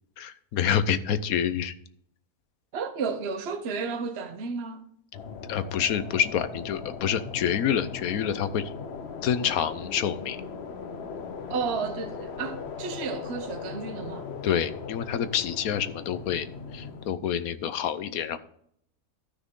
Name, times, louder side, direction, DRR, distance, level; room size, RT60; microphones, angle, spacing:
voice 1, 0.2-1.7 5.5-8.7 9.2-10.4 14.4-18.4, left 9 dB, 70° left, 1.2 m, -27 dB
voice 2, 2.7-4.8 11.5-14.3, right 5 dB, 50° right, 1.1 m, -32 dB
sound 1, 5.1-17.1, left 5 dB, 50° left, 1.0 m, -38 dB
13.5 x 6.1 x 3.7 m
omnidirectional pair, 1.6 m